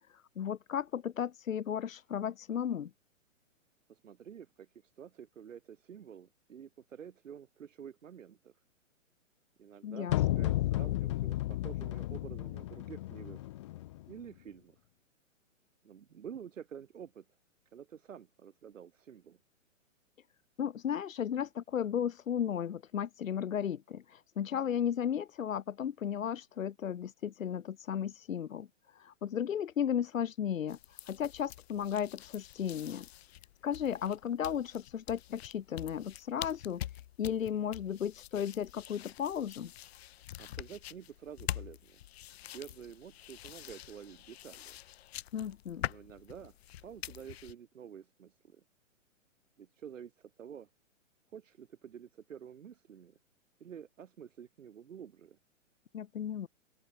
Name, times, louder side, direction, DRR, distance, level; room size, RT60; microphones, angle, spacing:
voice 1, 0.1-2.9 9.8-10.2 20.6-33.1 33.6-39.7 45.3-45.8 55.9-56.5, left 9 dB, 80° left, 1.2 m, -35 dB
voice 2, 3.9-8.5 9.6-13.4 14.1-14.8 15.8-17.3 17.7-19.4 40.4-42.0 42.5-44.8 45.8-46.6 46.8-48.6 49.6-50.7 51.3-53.2 53.6-55.4, right 8 dB, 70° right, 3.8 m, -49 dB
sound 1, 10.1-14.1, left 16 dB, 25° left, 0.5 m, -33 dB
sound 2, 30.7-47.5, left 13 dB, 50° left, 1.3 m, -45 dB
open air
hypercardioid pair, 135°, 39 cm